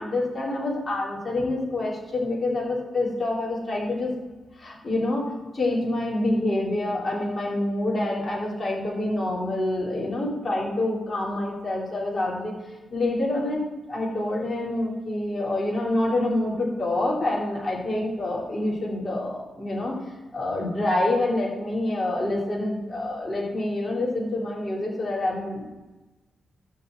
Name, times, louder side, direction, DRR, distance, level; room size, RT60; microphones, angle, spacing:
voice 1, 0.0-4.1 4.6-12.5 12.9-13.6 13.9-20.0 20.3-25.7, left 2 dB, 30° left, -5 dB, 3.5 m, -27 dB
11.5 x 4.3 x 7.9 m, 1.1 s
cardioid pair, 100°, 0 cm